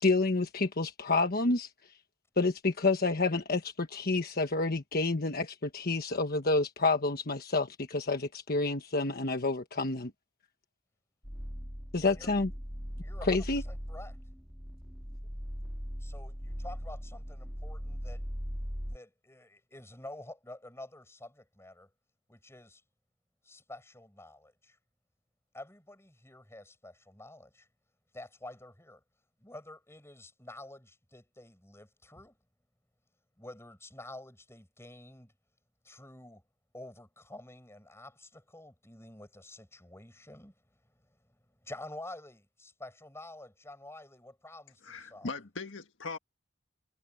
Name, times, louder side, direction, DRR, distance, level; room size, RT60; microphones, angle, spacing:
voice 1, 0.0-1.7 2.4-10.1 11.9-12.5 13.3-13.6, left 3 dB, 55° left, 1.3 m, -29 dB
sound 1, 11.2-19.0, equal, 5° right, 1.6 m, -39 dB
voice 2, 13.0-14.2 16.0-18.2 18.8-21.9 22.3-22.8 23.4-24.8 25.5-27.7 28.1-29.0 29.4-32.4 33.4-35.3 35.8-36.5 36.7-40.5 41.1-45.3, left 1 dB, 15° left, 7.4 m, -49 dB
voice 3, 44.8-46.2, left 3 dB, 85° left, 1.7 m, -39 dB
head